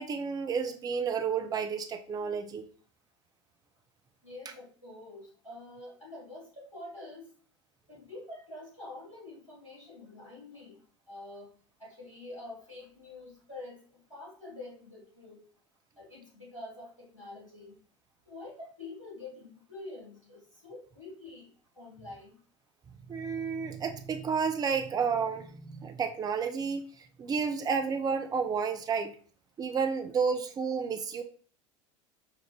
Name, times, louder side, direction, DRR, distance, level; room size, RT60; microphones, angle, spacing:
voice 1, 0.0-2.7 23.1-26.8 27.2-29.1 29.6-31.2, right 6 dB, 25° right, 7 dB, 0.5 m, -31 dB
voice 2, 4.2-7.3 7.9-11.5 11.8-15.4 16.0-17.8 18.3-21.5 21.8-22.4, left 2 dB, 90° left, -4 dB, 1.9 m, -46 dB
5.5 x 2.5 x 3.0 m, 0.43 s
figure-of-eight pair, 75°, 16 cm